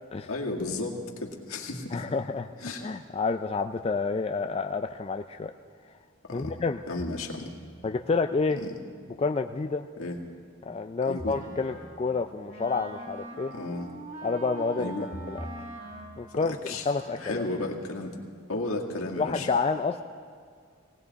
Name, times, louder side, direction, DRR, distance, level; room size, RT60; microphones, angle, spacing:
voice 1, 0.3-2.0 2.6-2.9 6.3-6.5 6.9-7.5 8.6-8.7 10.0-10.2 11.1-11.4 13.5-13.9 14.8-15.1 16.5-16.8 17.2-18.2 18.5-19.5, left 2 dB, 80° left, 0 dB, 1.9 m, -33 dB
voice 2, 1.9-2.5 2.8-5.5 6.3-6.8 7.8-8.6 9.2-9.9 10.7-13.5 14.2-14.9 15.3-15.5 16.2-17.4 19.2-20.0, left 4 dB, 25° left, 7 dB, 0.3 m, -29 dB
sound 1, 6.4-8.0 11.2-12.3 15.1-16.5, left 1 dB, 5° left, 0.8 m, -45 dB
Wind instrument woodwind instrument, 11.2-17.8, right 2 dB, 40° right, 3.7 m, -44 dB
19.0 x 18.5 x 4.1 m, 2.1 s
head